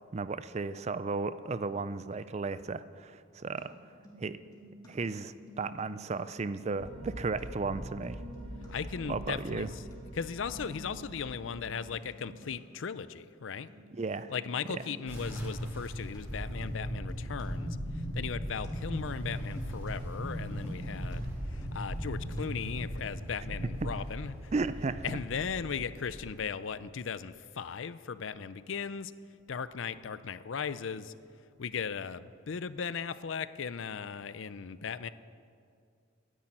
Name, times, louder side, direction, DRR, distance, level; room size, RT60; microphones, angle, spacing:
voice 1, 0.1-3.7 4.2-4.4 4.9-8.2 9.1-9.7 13.9-14.3 14.7-14.8 23.8-23.9 24.5-25.2, right 4 dB, 35° right, 14 dB, 0.4 m, -34 dB
sound 1, 3.6-3.7 3.9-4.9 5.2-6.1 6.4-7.4 7.9-8.7 9.0-9.9 10.2-11.2 11.5-11.8 12.1-12.5 13.0-13.1 13.4-13.5 13.7-16.2 16.5-16.8 17.1-17.4 17.9-18.7 19.0-19.3 19.6-19.9 20.3-21.2 21.4-21.8 22.1-22.4 22.8-23.1, equal, 20° left, 3.0 m, -53 dB
sound 2, 6.8-11.9, equal, 90° right, 2.3 m, -45 dB
voice 2, 8.7-9.7 10.1-13.7 14.3-24.5 25.0-29.1 29.5-31.1 31.6-35.1, left 6 dB, 75° left, 14 dB, 0.5 m, -37 dB
sound 3, 15.1-26.3, equal, 15° right, 3.2 m, -38 dB
12.5 x 10.5 x 8.9 m, 2.3 s
head